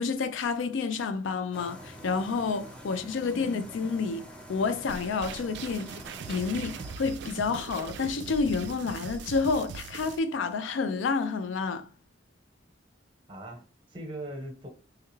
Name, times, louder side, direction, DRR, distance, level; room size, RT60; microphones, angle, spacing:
voice 1, 0.0-6.0 6.3-11.9, left 4 dB, 90° left, 0.4 m, -29 dB
sound 1, 1.5-7.0, equal, 5° left, 0.6 m, -46 dB
sound 2, 4.9-10.2, right 6 dB, 65° right, 0.3 m, -41 dB
voice 2, 13.3-14.7, right 1 dB, 30° right, 0.9 m, -42 dB
3.4 x 2.3 x 3.0 m
head